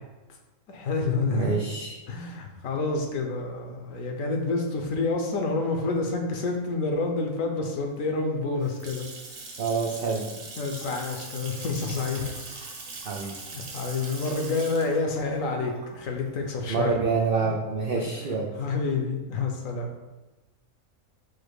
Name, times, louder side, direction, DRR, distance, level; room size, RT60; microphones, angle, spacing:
voice 1, 0.7-1.6 2.1-9.0 10.6-12.4 13.5-16.9 17.4-17.5 18.2-19.9, left 3 dB, 70° left, 2 dB, 1.0 m, -28 dB
voice 2, 1.3-1.9 9.6-10.3 13.1-13.3 16.7-18.5, right 4 dB, 90° right, 0 dB, 0.4 m, -27 dB
Water tap faucet / Sink (filling or washing) / Splash splatter, 8.4-17.2, right 3 dB, 50° right, 0.9 m, -41 dB
4.9 x 2.1 x 4.6 m, 1.1 s
omnidirectional pair, 1.5 m